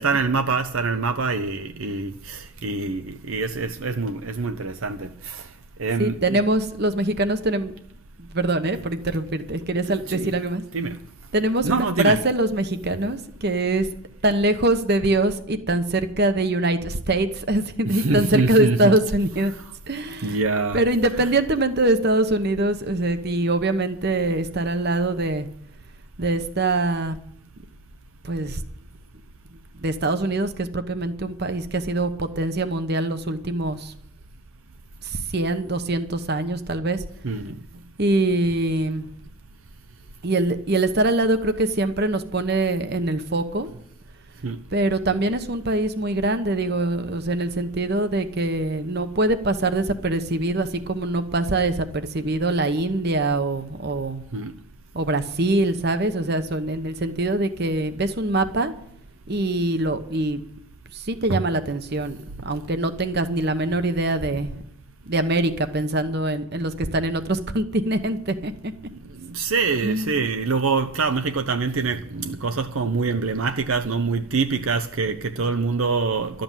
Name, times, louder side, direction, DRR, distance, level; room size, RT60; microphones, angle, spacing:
voice 1, 0.0-5.4 5.8-6.4 10.1-10.3 10.7-11.0 11.6-12.2 17.8-19.0 20.2-20.8 37.2-37.6 44.4-44.6 54.3-54.5 61.3-61.4 64.3-64.4 69.3-76.4, right 4 dB, 75° right, 0.7 m, -25 dB
voice 2, 6.0-7.7 8.2-10.6 11.3-13.9 14.2-19.5 19.9-20.4 20.7-25.5 26.2-27.2 28.2-28.6 29.5-33.9 35.0-37.0 38.0-39.1 40.2-43.7 44.7-54.2 54.9-58.7 59.3-60.4 60.9-64.5 65.1-68.7 69.8-70.2, right 2 dB, 50° right, 1.0 m, -23 dB
12.5 x 7.8 x 9.1 m
head